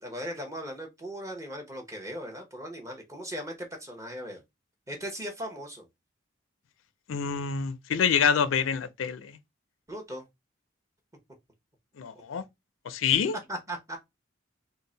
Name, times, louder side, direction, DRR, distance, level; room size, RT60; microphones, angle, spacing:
voice 1, 0.0-4.4 4.9-5.9 9.9-10.2 12.1-12.2 13.0-13.2 13.5-14.0, equal, 15° right, 0.9 m, -38 dB
voice 2, 7.1-9.4 12.0-12.4 12.9-13.4, left 7 dB, 90° left, 0.4 m, -26 dB
3.7 x 2.1 x 3.8 m
head